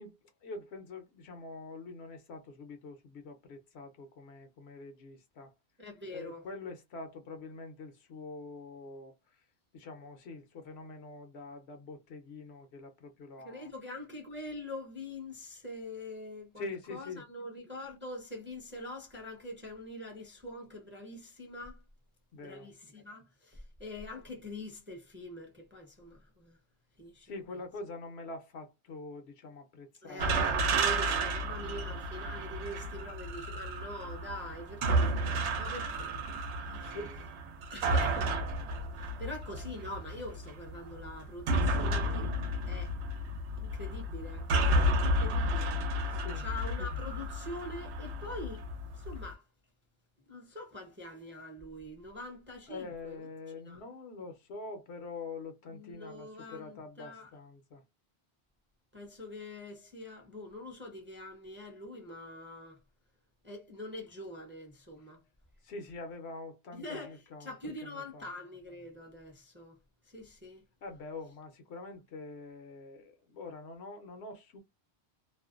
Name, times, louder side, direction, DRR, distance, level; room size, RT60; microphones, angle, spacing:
voice 1, 0.0-5.5 6.1-9.5 9.7-13.7 16.6-17.3 22.3-22.7 27.2-30.8 31.1-31.9 36.8-37.3 46.1-46.5 52.7-57.8 65.6-68.3 70.8-74.6, left 3 dB, 75° left, 0.9 m, -45 dB
voice 2, 5.8-6.4 13.4-21.8 22.4-26.6 27.0-27.3 30.0-37.0 37.7-38.3 39.0-42.3 42.7-43.0 43.6-44.5 45.0-45.8 46.4-48.7 48.9-49.4 50.3-53.2 53.7-53.8 55.7-57.3 58.9-62.8 63.4-65.2 66.7-69.8 70.1-70.6, left 1 dB, 15° right, 0.5 m, -44 dB
sound 1, 30.2-49.3, right 1 dB, 90° right, 0.9 m, -32 dB
2.5 x 2.1 x 2.3 m
omnidirectional pair, 1.1 m